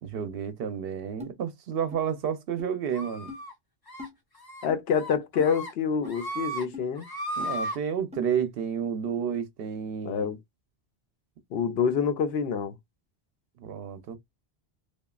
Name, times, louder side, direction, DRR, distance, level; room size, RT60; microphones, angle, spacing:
voice 1, 0.0-3.3 7.4-10.3 13.6-14.2, right 7 dB, 70° right, 0.8 m, -31 dB
sound 1, 1.2-1.3 1.9-2.0 2.6-2.7 3.3-3.4 4.0-4.1 4.7-4.8 5.4-5.5 6.0-6.2 6.7-6.9 7.4-7.5 8.1-8.2, left 5 dB, 10° right, 0.7 m, -41 dB
sound 2, 2.9-3.5 3.9-4.1 4.4-4.7 5.0-5.7 6.0-6.6 7.0-7.8, right 1 dB, 25° left, 0.7 m, -35 dB
voice 2, 4.6-7.1 10.1-10.4 11.5-12.7, left 6 dB, 80° left, 0.8 m, -27 dB
2.9 x 2.3 x 2.3 m
omnidirectional pair, 1.0 m